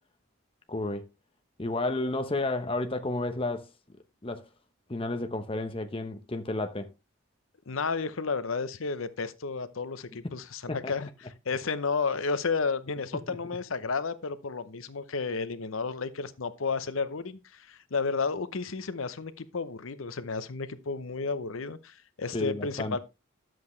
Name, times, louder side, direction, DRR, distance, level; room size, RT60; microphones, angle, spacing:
voice 1, 0.7-1.1 1.6-3.7 4.2-4.4 4.9-6.9 10.7-10.9 13.3-13.4 22.3-23.0, left 2 dB, 25° left, 0.9 m, -31 dB
voice 2, 7.7-23.0, left 4 dB, 80° left, 0.8 m, -32 dB
10.5 x 7.7 x 3.2 m
head